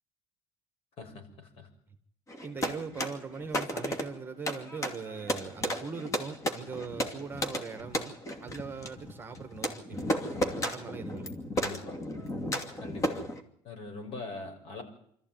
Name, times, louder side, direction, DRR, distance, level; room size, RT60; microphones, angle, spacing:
voice 1, 1.0-1.7 11.5-12.0 12.8-13.2 13.6-14.8, left 3 dB, 55° left, 4 dB, 6.3 m, -42 dB
sound 1, 2.3-13.4, equal, 25° left, 2.6 m, -34 dB
voice 2, 2.4-10.1 10.6-11.3, right 5 dB, 20° right, 8 dB, 1.8 m, -40 dB
25.5 x 14.0 x 9.3 m, 0.69 s
cardioid pair, 120°, 12 cm